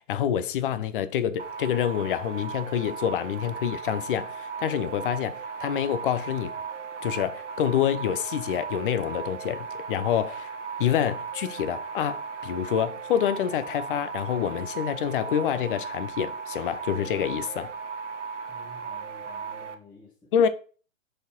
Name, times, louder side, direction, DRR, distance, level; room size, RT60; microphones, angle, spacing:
voice 1, 0.0-6.5 7.0-10.5 10.8-17.7 20.3-20.5, left 9 dB, 45° left, 0.6 m, -27 dB
sound 1, 1.4-19.7, right 5 dB, 65° right, 1.0 m, -37 dB
voice 2, 18.5-20.3, left 1 dB, 10° left, 1.6 m, -51 dB
5.1 x 4.2 x 4.4 m
figure-of-eight pair, 115°, 38 cm